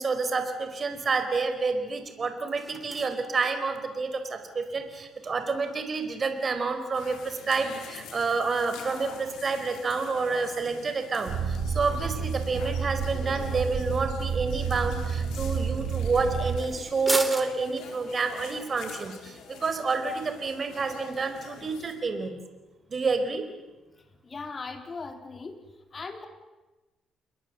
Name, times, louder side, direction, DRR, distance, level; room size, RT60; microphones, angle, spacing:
voice 1, 0.0-22.4 22.9-23.5, right 4 dB, 40° right, 8 dB, 4.6 m, -29 dB
sound 1, 0.6-20.2, right 1 dB, 5° right, 3.1 m, -43 dB
sound 2, 6.9-21.9, left 6 dB, 85° left, 4.4 m, -46 dB
sound 3, 11.3-16.6, right 6 dB, 70° right, 4.4 m, -30 dB
voice 2, 24.2-25.6 25.9-26.3, left 4 dB, 35° left, 7 dB, 4.0 m, -38 dB
29.5 x 21.5 x 8.1 m, 1.1 s
cardioid pair, 90°, 0 cm